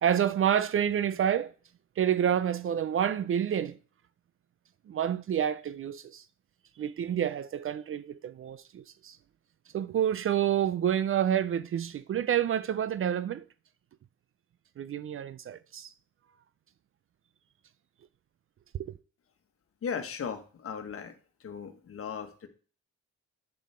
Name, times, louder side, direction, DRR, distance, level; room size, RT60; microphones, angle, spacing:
voice 1, 0.0-1.5 2.0-3.8 4.9-6.2 6.8-9.2 9.7-13.5 14.8-15.9 18.7-18.9, right 9 dB, 45° right, 0.5 m, -28 dB
voice 2, 19.8-21.1 21.4-22.5, left 6 dB, 45° left, 1.4 m, -37 dB
7.3 x 5.5 x 4.3 m
cardioid pair, 90°, 30 cm